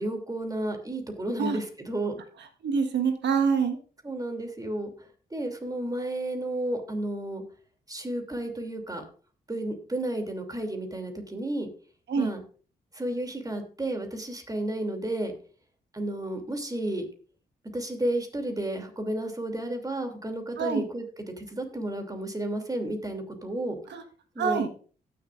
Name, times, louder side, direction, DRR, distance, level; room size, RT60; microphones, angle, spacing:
voice 1, 0.0-2.2 4.0-4.9 5.3-7.4 7.9-9.0 9.5-11.7 12.2-12.4 12.9-15.3 15.9-17.1 17.7-21.0 21.4-23.8 24.3-24.6, right 1 dB, 20° right, 4 dB, 2.8 m, -32 dB
voice 2, 2.6-3.8 12.1-12.3 20.6-20.8 23.9-24.0 24.4-24.7, right 6 dB, 70° right, 7 dB, 1.5 m, -25 dB
17.5 x 6.9 x 2.5 m, 0.40 s
supercardioid pair, 45°, 18 cm